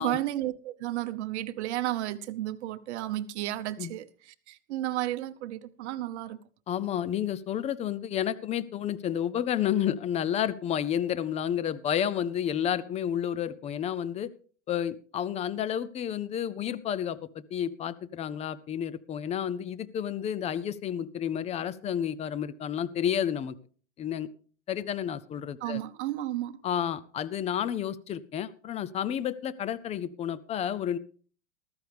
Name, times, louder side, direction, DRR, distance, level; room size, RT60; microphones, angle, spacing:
voice 1, 0.0-6.4 25.6-26.6, right 14 dB, 70° right, 1.0 m, -33 dB
voice 2, 6.7-14.3 14.7-23.6 24.0-24.3 24.7-25.8 26.6-31.0, left 9 dB, 20° left, 0.5 m, -31 dB
14.5 x 13.0 x 3.4 m
supercardioid pair, 135°, 35 cm